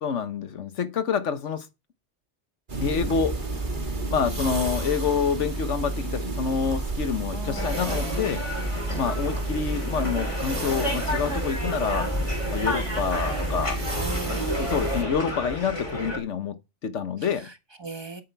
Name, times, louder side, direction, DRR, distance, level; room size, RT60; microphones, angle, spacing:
voice 1, 0.0-1.7 2.8-3.3 4.1-8.4 9.0-12.1 12.5-13.8 14.3-16.6 16.8-17.5, left 6 dB, 85° left, 1.4 m, -27 dB
sound 1, 2.7-15.0, right 2 dB, 45° right, 1.9 m, -31 dB
voice 2, 7.3-8.0 13.9-14.7 17.2-18.2, right 2 dB, 20° right, 1.5 m, -38 dB
sound 2, 7.6-16.2, left 1 dB, 25° left, 3.1 m, -31 dB
10.5 x 8.3 x 4.5 m
omnidirectional pair, 1.2 m